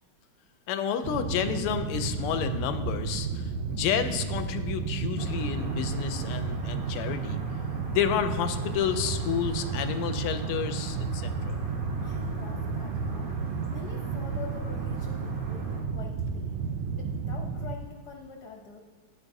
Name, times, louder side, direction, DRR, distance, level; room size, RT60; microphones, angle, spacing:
voice 1, 0.7-7.4 7.9-11.6, left 8 dB, 85° left, 9 dB, 1.5 m, -30 dB
sound 1, 1.0-17.7, right 5 dB, 80° right, 1.5 m, -32 dB
sound 2, 5.2-15.8, right 1 dB, 50° right, 0.6 m, -42 dB
voice 2, 12.0-13.3 13.7-16.6 16.9-18.8, left 5 dB, 60° left, 1 dB, 1.2 m, -45 dB
12.0 x 9.3 x 2.6 m, 1.4 s
omnidirectional pair, 2.4 m